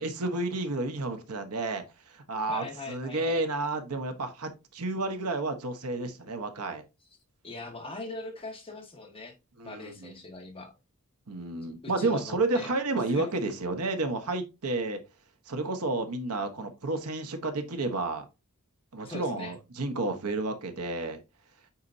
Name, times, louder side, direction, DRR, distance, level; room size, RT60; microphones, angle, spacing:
voice 1, 0.0-6.8 9.6-10.1 11.3-15.0 15.5-18.2 18.9-21.2, right 2 dB, 80° right, 1.1 m, -31 dB
voice 2, 2.5-3.4 7.4-9.4 9.6-10.7 11.8-12.7 13.1-13.3 19.0-19.5, left 2 dB, 25° left, 1.5 m, -41 dB
8.6 x 4.2 x 2.7 m
head